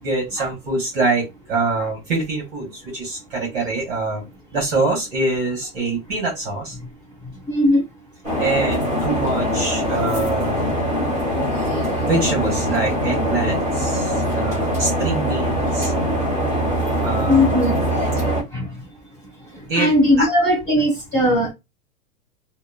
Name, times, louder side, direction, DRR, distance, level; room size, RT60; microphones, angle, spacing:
voice 1, 0.0-4.2 4.5-6.8 8.4-10.8 12.1-15.9 17.0-17.7 19.7-20.3, right 3 dB, 25° right, 0.8 m, -24 dB
voice 2, 7.5-7.8 17.3-17.8 18.5-18.7 19.7-21.5, left 1 dB, 20° left, 1.3 m, -18 dB
sound 1, 8.2-18.4, equal, 5° left, 0.7 m, -22 dB
2.8 x 2.0 x 2.2 m
supercardioid pair, 170°, 44 cm